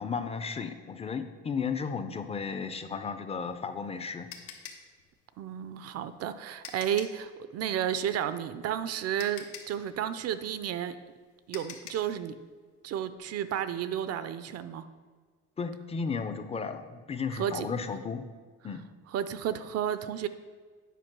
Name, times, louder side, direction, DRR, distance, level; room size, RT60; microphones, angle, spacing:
voice 1, 0.0-4.3 15.6-18.2 18.6-18.9, left 5 dB, 20° left, 9 dB, 0.5 m, -34 dB
sound 1, 3.4-7.3 8.7-8.8 9.2-12.2, left 7 dB, 90° left, 1.2 m, -46 dB
voice 2, 5.4-11.0 11.5-12.3 12.8-14.9 17.3-17.7 18.6-18.7 19.1-20.3, right 9 dB, 55° right, 12 dB, 0.5 m, -32 dB
9.2 x 4.9 x 6.0 m, 1.5 s
cardioid pair, 140°, 30 cm